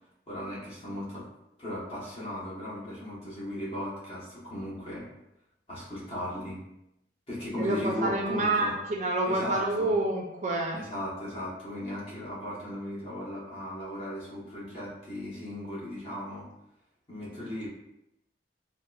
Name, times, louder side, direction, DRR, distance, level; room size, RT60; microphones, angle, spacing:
voice 1, 0.3-1.2 1.6-5.1 5.7-6.6 7.3-8.8 9.3-9.9 10.7-16.5 17.1-17.7, left 1 dB, 30° left, -8 dB, 1.1 m, -37 dB
voice 2, 7.6-10.8, right 2 dB, 40° right, 0 dB, 0.4 m, -28 dB
3.8 x 2.1 x 2.3 m, 0.86 s
head